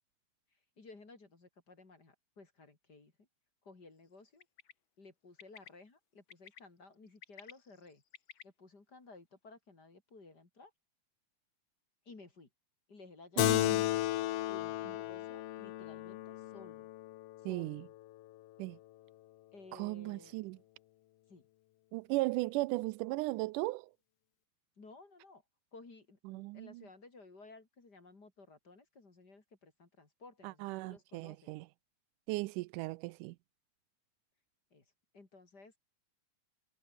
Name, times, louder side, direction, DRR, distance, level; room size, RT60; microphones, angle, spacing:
voice 1, 0.5-3.3 3.6-4.5 5.0-8.0 8.4-10.7 12.1-12.5 12.9-14.1 14.5-16.9 17.4-17.9 19.5-20.3 21.3-21.4 24.8-25.4 25.7-31.5 34.7-34.9 35.1-35.8, left 3 dB, 30° left, 3.7 m, -56 dB
Bird, 4.4-4.7 5.4-5.7 6.3-6.6 7.1-8.4, left 8 dB, 45° left, 2.0 m, -53 dB
Keyboard (musical), 13.4-18.3, left 15 dB, 80° left, 1.4 m, -34 dB
voice 2, 13.4-13.8 17.5-17.9 18.6-18.8 19.7-20.6 21.9-23.9 26.3-26.8 30.4-31.7 32.3-33.4, right 21 dB, 90° right, 2.1 m, -37 dB
omnidirectional pair, 3.6 m